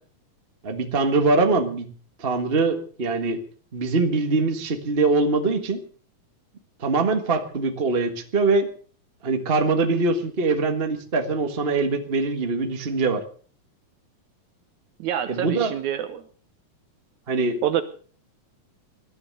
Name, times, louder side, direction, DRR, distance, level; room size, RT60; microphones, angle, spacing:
voice 1, 0.6-1.8 2.2-3.4 3.7-5.8 6.8-8.7 9.2-13.2 15.3-15.7 17.3-17.6, right 3 dB, 35° right, 6 dB, 0.8 m, -23 dB
voice 2, 15.0-16.2 17.6-17.8, right 10 dB, 75° right, 10 dB, 2.2 m, -26 dB
20.0 x 11.0 x 6.6 m, 0.43 s
omnidirectional pair, 3.6 m